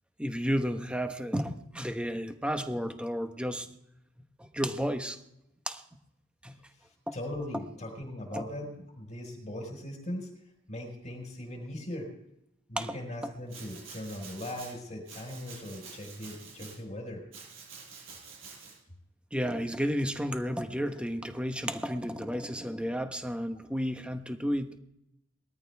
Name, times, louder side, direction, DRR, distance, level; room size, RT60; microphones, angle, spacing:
voice 1, 0.2-3.7 4.4-5.2 5.7-5.8 6.4-6.6 7.1-7.2 8.3-8.4 12.8-12.9 19.3-24.8, equal, 5° right, 7 dB, 1.1 m, -32 dB
voice 2, 7.1-10.3 10.7-12.1 12.7-17.2, left 1 dB, 40° left, -1 dB, 4.6 m, -39 dB
Domestic sounds home sounds, 13.5-14.7 15.0-16.8 17.3-18.7, right 5 dB, 85° right, 7.3 m, -48 dB
20.5 x 13.5 x 3.5 m, 0.80 s
head